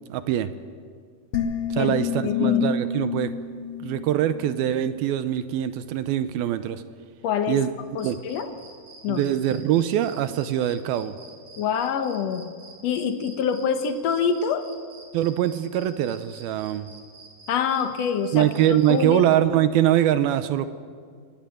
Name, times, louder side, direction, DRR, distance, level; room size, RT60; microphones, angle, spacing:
voice 1, 0.1-0.5 1.7-3.3 3.8-6.8 7.5-7.7 8.0-8.2 9.1-11.1 15.1-16.9 18.3-20.7, right 11 dB, 80° right, 12 dB, 2.5 m, -23 dB
sound 1, 1.3-4.7, left 7 dB, 50° left, 2.4 m, -28 dB
voice 2, 2.2-2.6 7.2-7.6 7.9-8.5 9.0-9.2 11.6-12.4 12.8-14.7 17.5-18.5 18.9-19.2, left 7 dB, 65° left, 8 dB, 1.6 m, -25 dB
sound 2, 7.8-18.9, right 3 dB, 65° right, 5.4 m, -48 dB
24.5 x 19.0 x 7.8 m, 2.1 s
omnidirectional pair, 4.6 m